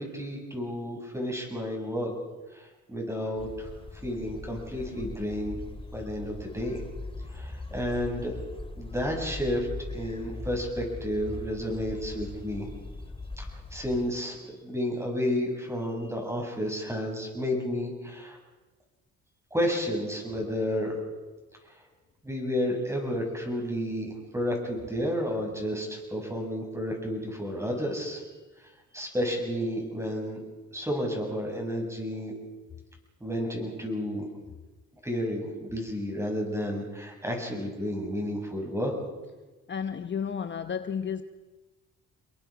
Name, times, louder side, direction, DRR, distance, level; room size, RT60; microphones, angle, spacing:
voice 1, 0.0-2.1 2.5-3.7 4.0-5.6 5.9-6.8 7.3-8.4 8.8-12.7 13.4-13.5 13.7-18.4 19.5-21.0 22.2-28.2 28.9-30.4 30.7-32.3 33.2-34.3 35.0-38.9, equal, 10° right, 7.7 m, -31 dB
sound 1, 3.4-14.1, left 3 dB, 20° left, 2.5 m, -40 dB
voice 2, 39.7-41.2, left 7 dB, 40° left, 1.0 m, -32 dB
28.5 x 22.0 x 5.2 m
cardioid pair, 90°, 30 cm